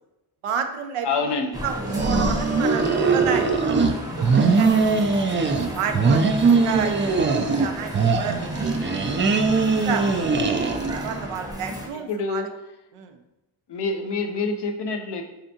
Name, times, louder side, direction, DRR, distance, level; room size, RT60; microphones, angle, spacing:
voice 1, 0.4-1.1 1.6-5.2 5.7-8.8 9.3-10.1 10.6-12.5 12.9-13.2, right 7 dB, 90° right, 6 dB, 0.6 m, -31 dB
voice 2, 1.0-1.6 6.4-6.6 10.0-10.4 12.1-12.5 13.7-15.2, left 4 dB, 55° left, 5 dB, 0.7 m, -27 dB
sound 1, 1.5-11.9, equal, 10° right, 0.7 m, -33 dB
sound 2, 1.9-3.9 4.2-5.7 5.9-7.7 7.9-11.1, right 4 dB, 25° right, 0.3 m, -21 dB
3.8 x 3.4 x 2.7 m, 0.96 s
cardioid pair, 70°, 50 cm